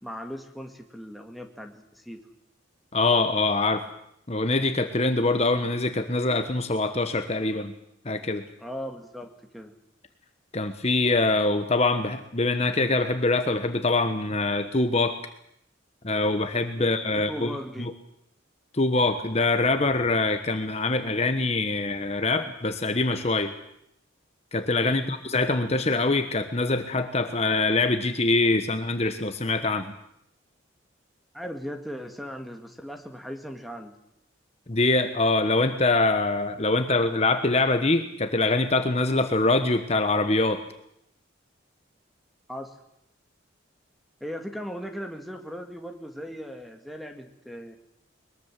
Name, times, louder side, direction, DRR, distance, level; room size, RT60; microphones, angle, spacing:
voice 1, 0.0-2.2 8.6-9.7 16.8-17.9 24.8-25.1 31.3-33.9 42.5-42.8 44.2-47.8, equal, ahead, 5 dB, 2.1 m, -38 dB
voice 2, 2.9-3.9 4.3-7.7 8.0-8.4 10.5-15.2 16.0-17.9 18.7-23.5 24.5-29.9 34.7-40.6, left 2 dB, 35° left, 8 dB, 1.2 m, -24 dB
22.0 x 22.0 x 7.6 m, 0.76 s
head